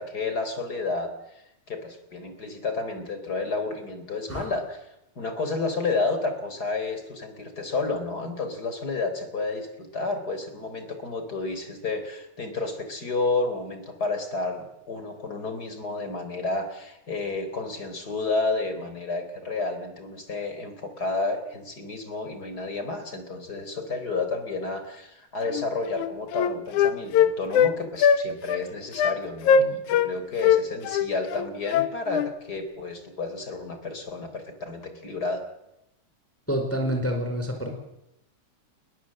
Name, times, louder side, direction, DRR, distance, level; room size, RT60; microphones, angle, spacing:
voice 1, 0.0-1.4 1.7-4.9 5.2-35.4, left 3 dB, 30° left, 8 dB, 4.4 m, -31 dB
Wind instrument woodwind instrument, 25.5-25.7 26.0-27.7 28.0-28.2 28.5-28.6 29.0-29.2 29.4-30.1 30.4-32.3, left 7 dB, 75° left, 2.5 m, -21 dB
voice 2, 36.5-37.7, equal, 5° left, 4 dB, 4.6 m, -27 dB
28.5 x 23.0 x 7.8 m, 0.86 s
omnidirectional pair, 3.6 m